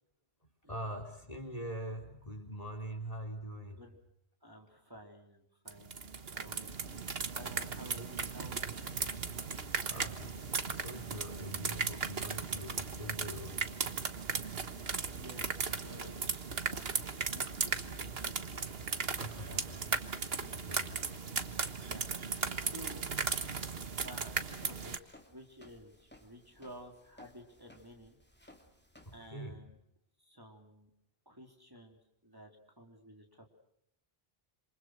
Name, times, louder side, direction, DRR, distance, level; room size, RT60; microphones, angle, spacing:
voice 1, 0.7-3.8 9.9-13.6 19.2-19.6 20.4-20.9 29.1-29.6, right 1 dB, 35° left, 5 dB, 3.9 m, -43 dB
voice 2, 4.4-6.0 6.3-7.0 7.3-9.0 14.5-18.5 19.4-19.9 20.2-21.0 21.8-23.0 24.0-28.2 29.1-29.8 30.2-30.9 31.3-33.5, equal, 20° right, 2 dB, 3.7 m, -53 dB
sound 1, 5.7-25.0, right 5 dB, 65° right, 1.7 m, -37 dB
Walk footsteps, 24.1-29.3, left 1 dB, 10° left, 2.9 m, -60 dB
27.5 x 27.0 x 6.4 m, 0.76 s
omnidirectional pair, 1.1 m